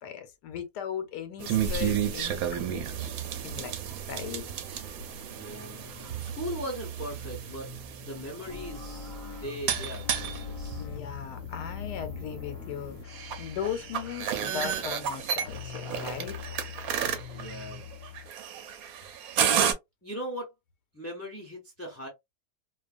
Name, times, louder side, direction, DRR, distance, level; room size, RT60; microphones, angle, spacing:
voice 1, 0.0-3.1 3.4-3.7 4.1-5.0 10.8-16.4, left 8 dB, 90° left, 1.2 m, -38 dB
sound 1, 1.4-19.7, right 9 dB, 70° right, 1.0 m, -33 dB
sound 2, 4.6-18.3, left 7 dB, 65° left, 1.0 m, -43 dB
voice 2, 5.3-5.9 6.2-7.7 8.0-9.1 9.4-10.9 17.3-17.9 20.0-20.5 20.9-22.1, equal, 20° left, 0.3 m, -39 dB
2.5 x 2.3 x 2.4 m
omnidirectional pair, 1.7 m